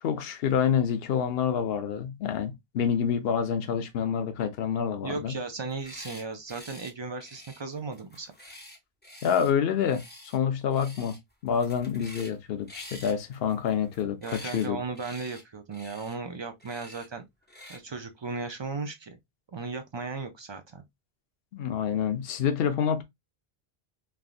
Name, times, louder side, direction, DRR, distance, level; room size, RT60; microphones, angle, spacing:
voice 1, 0.0-5.3 9.2-11.2 11.4-14.8 21.5-23.0, left 7 dB, 75° left, 0.8 m, -27 dB
voice 2, 5.0-8.3 14.2-17.2 17.7-19.2 19.5-20.8, right 4 dB, 45° right, 0.3 m, -36 dB
sound 1, 5.7-6.2 6.5-6.9 7.2-9.5 9.9-10.4 10.7-11.2 11.5-12.4 12.7-14.7 14.9-15.4 15.7-16.2 16.6-17.1 17.5-17.8, left 1 dB, 10° left, 0.7 m, -48 dB
3.4 x 2.4 x 2.4 m
omnidirectional pair, 1.0 m